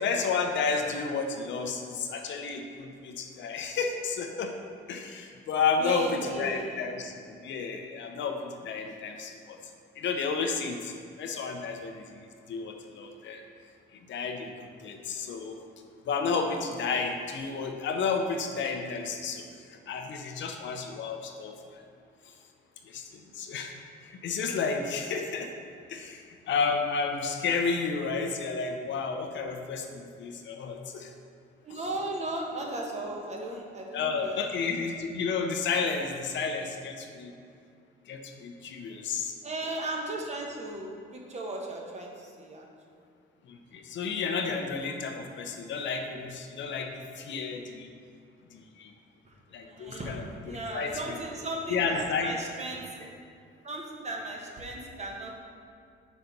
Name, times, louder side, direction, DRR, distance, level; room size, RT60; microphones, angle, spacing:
voice 1, 0.0-4.5 4.9-6.1 6.4-9.6 10.0-13.4 13.9-14.5 14.8-15.6 16.1-21.8 22.3-22.4 22.9-23.8 24.0-25.5 25.9-31.1 33.9-37.3 38.1-39.3 43.5-47.9 48.5-48.9 49.5-51.2 51.7-52.3, left 5 dB, 70° left, 4 dB, 0.7 m, -32 dB
voice 2, 5.8-7.0 31.6-34.4 36.0-36.1 39.4-42.7 49.6-53.1 53.6-55.4, right 2 dB, 35° right, -1 dB, 1.2 m, -36 dB
5.3 x 4.1 x 5.9 m, 2.3 s
cardioid pair, 90°, 20 cm